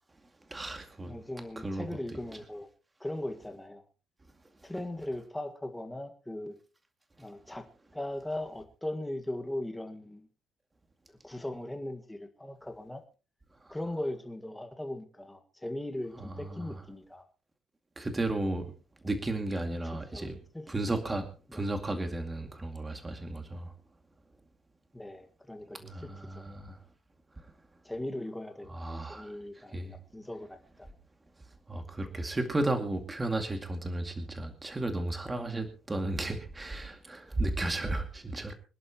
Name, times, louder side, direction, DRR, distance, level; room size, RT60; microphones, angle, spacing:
voice 1, 0.5-1.1 1.6-1.9 16.5-16.6 18.0-18.7 19.0-20.4 20.7-23.7 25.8-26.8 27.4-27.5 28.7-29.3 29.7-29.9 31.7-38.5, right 2 dB, 15° right, 2.3 m, -34 dB
voice 2, 1.0-2.7 3.0-3.8 4.6-6.5 7.2-7.7 7.9-10.3 11.2-13.0 13.7-17.2 20.1-20.3 20.5-20.8 21.5-21.6 24.9-26.4 27.8-30.9, left 1 dB, 5° left, 1.8 m, -39 dB
26.0 x 11.0 x 3.0 m
cardioid pair, 160°, 0 cm